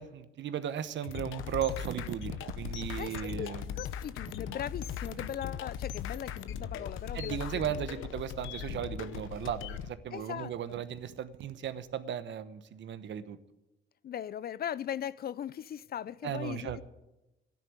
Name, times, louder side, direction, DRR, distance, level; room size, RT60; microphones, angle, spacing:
voice 1, 0.0-3.8 7.1-13.4 16.2-16.8, right 9 dB, 65° right, 1.1 m, -36 dB
sound 1, 1.0-9.9, left 9 dB, 85° left, 0.9 m, -39 dB
sound 2, 1.7-3.4 4.2-5.8 6.7-7.8 8.2-9.7 10.3-12.1, right 13 dB, 85° right, 0.7 m, -48 dB
voice 2, 3.0-7.6 10.1-10.5 14.0-16.8, left 10 dB, 50° left, 0.5 m, -39 dB
12.5 x 10.0 x 9.6 m
cardioid pair, 90°, 20 cm